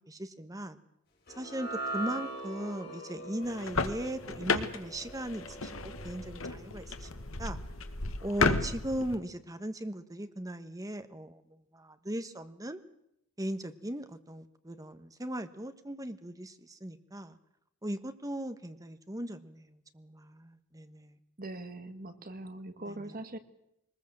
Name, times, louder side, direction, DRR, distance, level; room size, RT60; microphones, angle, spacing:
voice 1, 0.1-0.8 1.4-7.1 7.4-7.6 8.2-11.4 11.7-12.8 13.4-17.4 17.8-21.1 22.9-23.0, right 1 dB, 15° right, 10 dB, 1.3 m, -38 dB
sound 1, 1.3-7.7, right 2 dB, 50° left, 7.1 m, -42 dB
sound 2, 3.4-9.1, left 3 dB, 75° left, 1.6 m, -33 dB
voice 2, 21.4-23.4, right 2 dB, 45° right, 9 dB, 1.6 m, -42 dB
22.0 x 20.5 x 7.7 m, 0.81 s
head